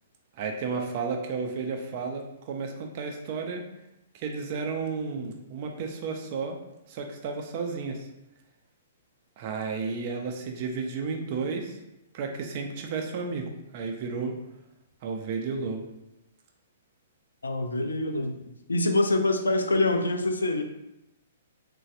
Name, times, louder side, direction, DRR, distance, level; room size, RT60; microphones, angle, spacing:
voice 1, 0.4-3.6 4.1-6.6 6.9-8.0 9.4-11.7 12.1-14.3 15.0-15.8, right 4 dB, 45° right, 3 dB, 0.5 m, -32 dB
voice 2, 17.4-20.6, left 2 dB, 80° left, 6 dB, 0.3 m, -25 dB
3.1 x 2.2 x 2.7 m, 0.88 s
figure-of-eight pair, 115°, 0 cm